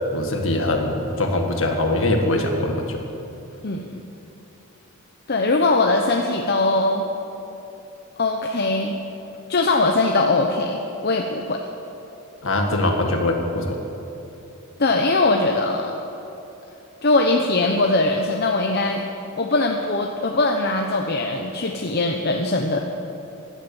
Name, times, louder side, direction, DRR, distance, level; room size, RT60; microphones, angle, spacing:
voice 1, 0.1-3.0 12.4-13.8, left 1 dB, 65° left, 3 dB, 1.8 m, -22 dB
voice 2, 3.6-4.0 5.3-7.0 8.2-9.0 9.5-11.6 14.8-15.9 17.0-19.0 19.4-22.8, left 2 dB, 45° left, 2 dB, 0.9 m, -21 dB
16.0 x 11.5 x 7.1 m, 2.9 s
head